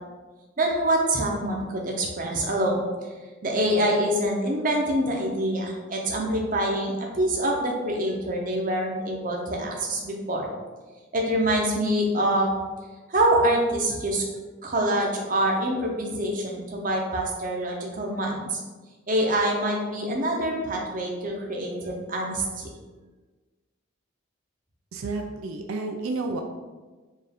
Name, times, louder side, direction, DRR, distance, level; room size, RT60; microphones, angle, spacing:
voice 1, 0.6-2.8 3.4-10.5 11.1-12.5 13.1-14.2 14.6-18.6 19.1-22.7, right 1 dB, 40° right, 0 dB, 0.7 m, -25 dB
voice 2, 24.9-26.4, right 3 dB, 85° right, 3 dB, 0.4 m, -30 dB
4.5 x 2.5 x 3.5 m, 1.3 s
head